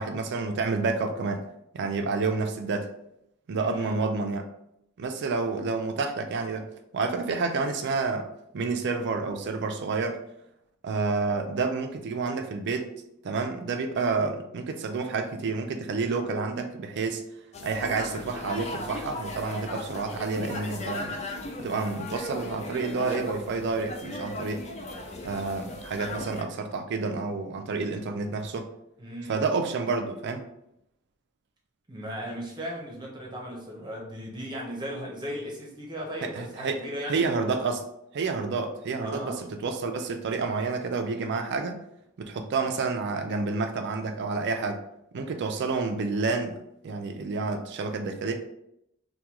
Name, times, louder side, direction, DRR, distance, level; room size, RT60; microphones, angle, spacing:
voice 1, 0.0-1.5 1.7-2.9 3.5-4.5 5.0-6.7 6.9-8.3 8.5-10.2 10.8-12.9 13.2-17.2 17.6-21.2 21.6-24.7 25.2-28.7 29.3-30.5 36.2-36.8 37.1-37.9 38.1-41.8 42.2-44.8 45.1-48.3, right 4 dB, 55° right, 6 dB, 0.4 m, -29 dB
voice 2, 3.6-4.0 29.0-29.4 31.9-37.3 39.0-39.4, equal, 20° right, -2 dB, 0.8 m, -36 dB
sound 1, 17.5-26.4, left 2 dB, 30° left, 0.4 m, -37 dB
3.5 x 2.3 x 2.9 m, 0.79 s
head